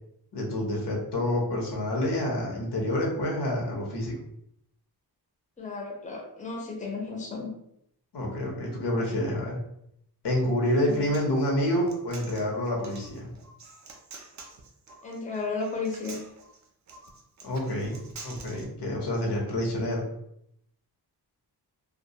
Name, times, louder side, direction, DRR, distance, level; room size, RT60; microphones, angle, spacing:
voice 1, 0.3-4.2 8.1-9.6 10.2-13.3 17.4-20.0, left 1 dB, 80° left, -1 dB, 0.8 m, -28 dB
voice 2, 5.6-7.5 10.7-11.1 15.0-16.2, left 4 dB, 20° left, 0 dB, 0.5 m, -34 dB
Human voice, 10.7-18.6, right 3 dB, 45° right, 0.4 m, -48 dB
2.2 x 2.2 x 2.7 m, 0.75 s
wide cardioid pair, 115°, 40 cm